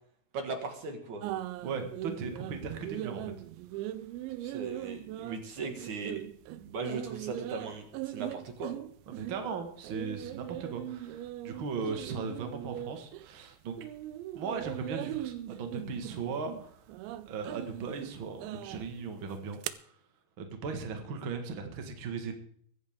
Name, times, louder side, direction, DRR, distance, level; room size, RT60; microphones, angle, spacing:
voice 1, 0.3-1.2 4.4-6.2 6.6-8.7, right 4 dB, 50° right, 5 dB, 2.8 m, -38 dB
sound 1, 1.2-13.5 13.8-19.7, right 14 dB, 90° right, 3.0 m, -40 dB
voice 2, 1.6-3.2 3.7-3.8 9.1-13.7 14.3-16.8 17.2-19.9 20.4-22.4, right 5 dB, 70° right, 5 dB, 1.2 m, -38 dB
24.0 x 10.5 x 3.7 m, 0.62 s
omnidirectional pair, 5.1 m